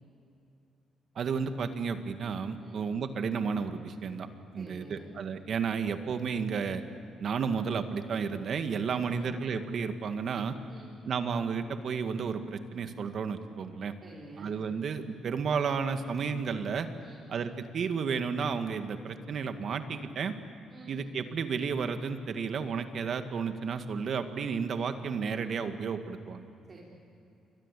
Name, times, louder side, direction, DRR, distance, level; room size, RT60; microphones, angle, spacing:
voice 1, 1.2-4.3 4.5-6.8 7.2-10.6 11.1-13.9 14.4-16.9 17.3-20.4 20.9-26.4, right 5 dB, 60° right, 8 dB, 1.9 m, -32 dB
voice 2, 4.5-5.1 8.9-9.3 10.7-10.9 14.0-14.5 17.0-17.2 20.7-20.9 26.6-26.8, right 2 dB, 35° right, -3 dB, 4.6 m, -49 dB
29.0 x 23.5 x 8.4 m, 2.7 s
cardioid pair, 90°, 0 cm